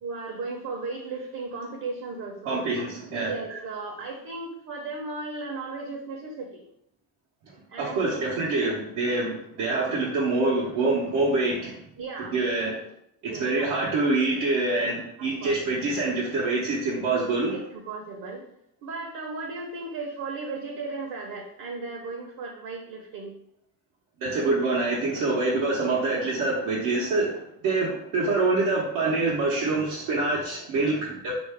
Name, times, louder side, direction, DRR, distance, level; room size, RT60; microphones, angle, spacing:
voice 1, 0.0-2.8 3.3-6.6 7.7-8.6 12.0-12.3 13.2-13.7 14.7-14.9 15.2-15.6 17.5-18.4 18.8-23.3, right 3 dB, 65° right, 0 dB, 0.8 m, -36 dB
voice 2, 2.4-3.3 7.8-11.8 12.2-12.8 13.2-17.6 24.2-31.3, right 3 dB, 90° right, -6 dB, 0.9 m, -25 dB
3.5 x 2.6 x 3.3 m, 0.73 s
cardioid pair, 75°, 38 cm